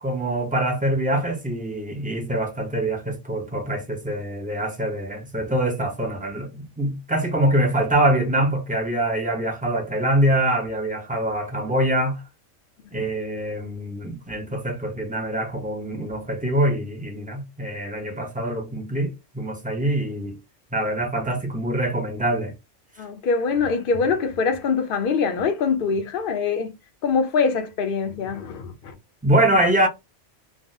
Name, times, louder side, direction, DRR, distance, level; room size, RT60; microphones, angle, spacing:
voice 1, 0.0-12.2 12.9-20.4 20.7-22.5 29.2-29.9, right 1 dB, 10° right, 0.5 m, -24 dB
voice 2, 23.0-26.7 27.0-29.0, left 5 dB, 55° left, 0.7 m, -24 dB
3.5 x 2.0 x 2.6 m
omnidirectional pair, 1.3 m